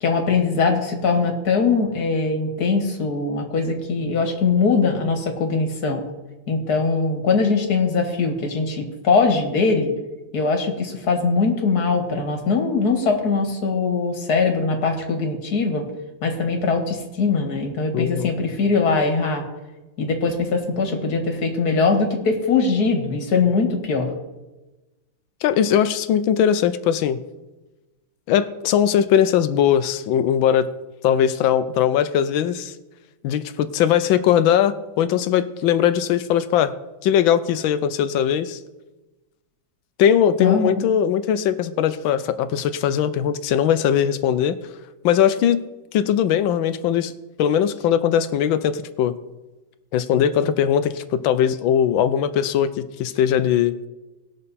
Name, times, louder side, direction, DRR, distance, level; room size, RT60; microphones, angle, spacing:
voice 1, 0.0-6.0 6.5-9.9 10.3-15.9 16.2-19.4 20.0-24.1 40.4-40.7, left 4 dB, 55° left, 3 dB, 2.1 m, -21 dB
voice 2, 17.9-18.3 25.4-27.2 28.3-30.7 31.0-32.7 33.2-36.7 37.0-38.6 40.0-44.6 45.0-45.6 45.9-47.1 47.4-49.1 49.9-52.7 53.0-53.8, left 9 dB, 80° left, 13 dB, 1.4 m, -20 dB
19.0 x 6.6 x 4.2 m, 1.1 s
omnidirectional pair, 2.1 m